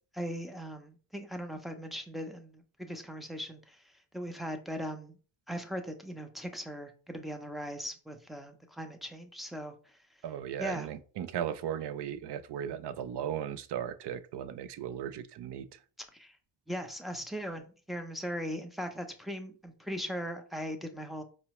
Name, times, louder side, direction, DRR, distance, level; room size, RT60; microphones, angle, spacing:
voice 1, 0.1-5.2 5.5-9.7 10.6-10.9 16.1-16.4 16.7-21.2, equal, ahead, 0.5 m, -39 dB
voice 2, 10.2-15.8, right 9 dB, 60° right, 0.5 m, -37 dB
4.6 x 2.1 x 2.9 m
cardioid pair, 85°, 48 cm